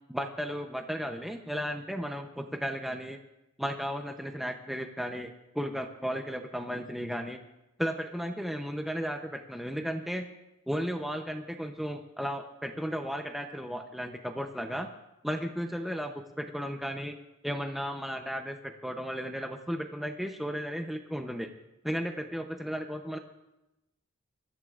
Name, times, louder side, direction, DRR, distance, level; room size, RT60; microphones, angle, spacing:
voice 1, 0.1-3.2 3.6-7.4 7.8-10.3 10.7-14.9 15.2-17.2 17.4-21.5 21.8-23.2, equal, ahead, 4 dB, 0.7 m, -34 dB
24.5 x 14.0 x 2.5 m, 0.93 s
head